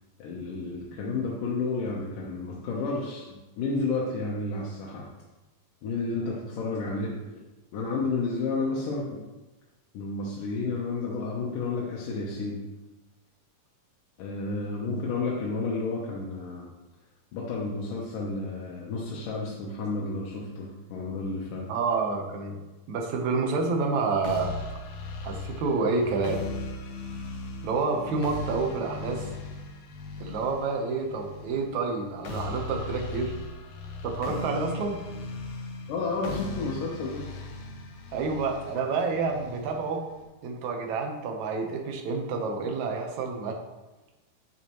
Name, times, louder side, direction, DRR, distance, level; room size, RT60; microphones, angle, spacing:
voice 1, 0.2-5.1 5.8-7.2 7.7-9.2 9.9-12.6 14.2-16.7 17.3-21.7 35.9-37.3, left 3 dB, 90° left, -3 dB, 2.6 m, -31 dB
voice 2, 21.7-22.6 22.9-24.5 25.2-26.4 27.6-29.3 30.2-33.3 34.0-35.0 38.1-40.0 40.4-43.6, right 4 dB, 70° right, 2 dB, 2.3 m, -28 dB
sound 1, 24.2-40.2, left 3 dB, 70° left, 2.2 m, -38 dB
9.8 x 7.0 x 3.1 m, 1.1 s
omnidirectional pair, 3.7 m